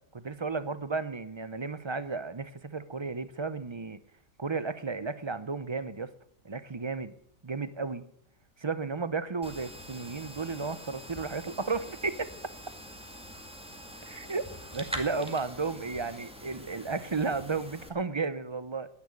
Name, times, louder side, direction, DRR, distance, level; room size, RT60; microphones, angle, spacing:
voice 1, 0.1-4.0 4.4-6.1 6.4-7.1 7.4-8.0 8.6-12.3 14.1-18.9, right 4 dB, 30° right, 0.5 m, -33 dB
sound 1, 9.4-17.9, equal, 5° right, 1.8 m, -44 dB
10.5 x 10.0 x 9.6 m
omnidirectional pair, 1.4 m